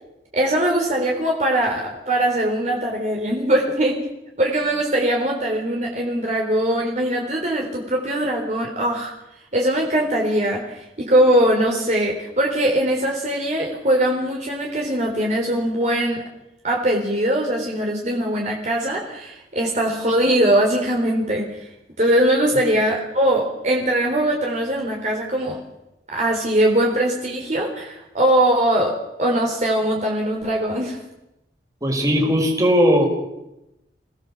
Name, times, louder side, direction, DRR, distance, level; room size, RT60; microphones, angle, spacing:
voice 1, 0.3-4.0 4.4-9.1 9.5-16.2 16.6-21.6 22.0-25.6 26.1-31.0, right 1 dB, 40° right, -1 dB, 3.8 m, -21 dB
voice 2, 31.8-33.1, equal, 20° right, 1 dB, 4.9 m, -17 dB
28.0 x 17.5 x 7.2 m, 0.92 s
head